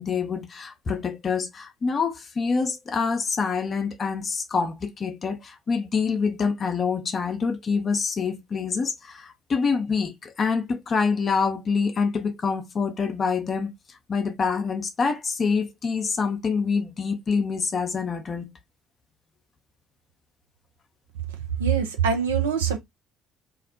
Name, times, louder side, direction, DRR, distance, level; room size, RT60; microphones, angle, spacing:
voice 1, 0.0-18.5, left 5 dB, 35° left, 0.5 m, -26 dB
voice 2, 21.6-22.8, right 7 dB, 75° right, 0.4 m, -23 dB
2.4 x 2.0 x 2.5 m
figure-of-eight pair, 50°, 0 cm